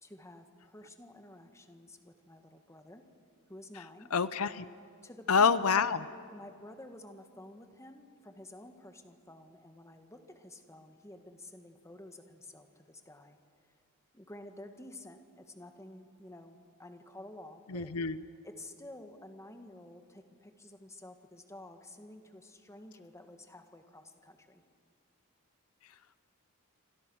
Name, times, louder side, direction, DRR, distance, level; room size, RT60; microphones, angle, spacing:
voice 1, 0.0-3.0 3.5-4.1 5.0-6.0 6.3-13.4 14.1-17.9 18.4-24.6, left 1 dB, 15° left, 6 dB, 1.7 m, -51 dB
voice 2, 4.1-4.7 5.3-6.0 17.7-18.2, left 6 dB, 75° left, 15 dB, 0.7 m, -27 dB
28.5 x 25.5 x 6.3 m, 2.3 s
head